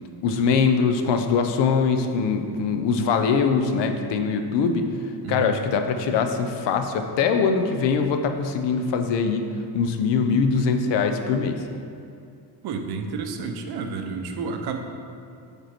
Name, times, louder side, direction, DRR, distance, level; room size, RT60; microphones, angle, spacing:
voice 1, 0.2-4.9 5.3-9.4 9.7-11.6, left 5 dB, 85° left, 6 dB, 0.6 m, -22 dB
voice 2, 5.2-5.6 12.6-14.8, right 5 dB, 65° right, 5 dB, 0.7 m, -30 dB
5.2 x 4.6 x 4.3 m, 2.5 s
cardioid pair, 125°, 41 cm